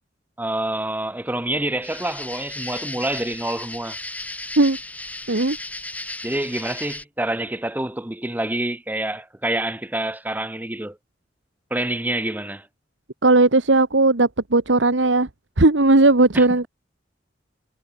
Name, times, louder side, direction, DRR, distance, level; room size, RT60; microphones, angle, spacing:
voice 1, 0.4-4.0 6.2-11.0 11.7-12.7 16.3-16.7, right 1 dB, 10° right, 1.0 m, -27 dB
sound 1, 1.8-7.0, left 2 dB, 10° left, 3.8 m, -35 dB
voice 2, 13.2-15.3 15.6-16.7, right 2 dB, 90° right, 1.5 m, -17 dB
head